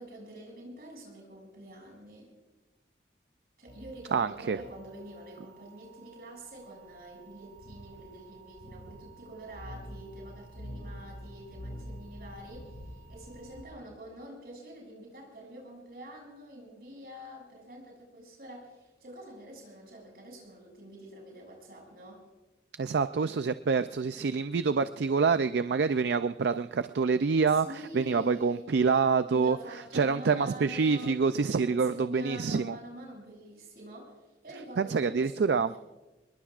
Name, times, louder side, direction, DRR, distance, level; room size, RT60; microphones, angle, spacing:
voice 1, 0.0-2.3 3.6-22.2 27.5-28.7 29.3-31.2 31.6-35.8, equal, 55° right, -1 dB, 6.6 m, -46 dB
sound 1, 3.7-13.6, equal, 60° left, 2.1 m, -47 dB
voice 2, 4.1-4.6 22.8-29.6 29.9-32.8 34.8-35.7, right 5 dB, 70° right, 12 dB, 0.4 m, -26 dB
26.0 x 21.5 x 2.5 m, 1.1 s
head